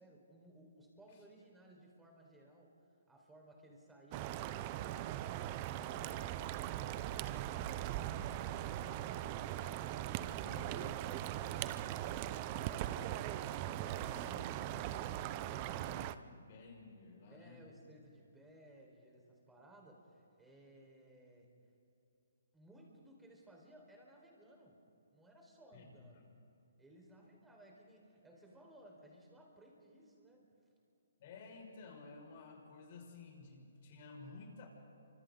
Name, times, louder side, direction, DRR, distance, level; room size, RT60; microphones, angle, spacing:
voice 1, 0.0-5.1 17.3-21.5 22.5-24.8 25.1-26.3 26.8-30.5, right 1 dB, 5° right, -1 dB, 4.7 m, -60 dB
sound 1, 4.1-16.1, right 13 dB, 30° right, 0.7 m, -40 dB
voice 2, 10.4-11.0 13.7-14.8 15.5-17.6 25.7-25.9 31.2-34.7, left 4 dB, 45° left, 1 dB, 5.9 m, -54 dB
30.0 x 26.0 x 4.0 m, 2.8 s
hypercardioid pair, 145°, 0 cm